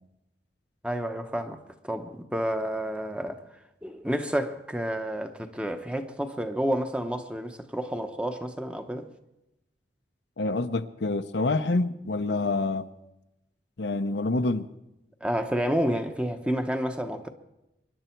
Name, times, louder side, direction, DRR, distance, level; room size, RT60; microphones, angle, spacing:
voice 1, 0.8-3.4 3.8-9.1 15.2-17.3, equal, 5° right, 0.9 m, -30 dB
voice 2, 10.4-12.9 13.8-14.7, left 2 dB, 75° left, 0.7 m, -27 dB
24.5 x 11.0 x 4.5 m
head